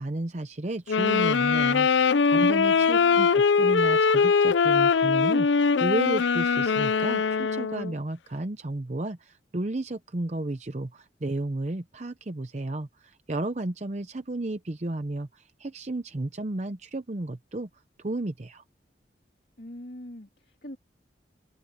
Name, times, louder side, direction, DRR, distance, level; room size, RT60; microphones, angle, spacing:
voice 1, 0.0-17.7 18.0-18.6, right 2 dB, 40° right, 0.7 m, -33 dB
sound 1, 0.9-7.9, left 5 dB, 90° left, 0.5 m, -22 dB
voice 2, 2.6-3.3 19.6-20.8, left 1 dB, 55° left, 2.7 m, -43 dB
head